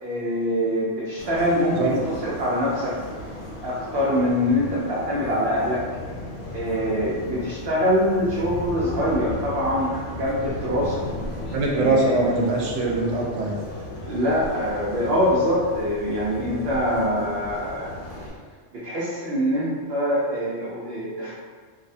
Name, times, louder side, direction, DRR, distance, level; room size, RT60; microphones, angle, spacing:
voice 1, 0.0-3.0 3.6-5.8 6.5-11.1 11.7-12.1 14.1-17.9 18.7-21.3, equal, 60° right, -7 dB, 0.7 m, -24 dB
sound 1, 1.2-18.3, left 1 dB, 75° left, 0.9 m, -36 dB
voice 2, 11.5-13.6, right 2 dB, 90° right, -1 dB, 0.9 m, -22 dB
2.6 x 2.1 x 2.6 m, 1.5 s
omnidirectional pair, 1.3 m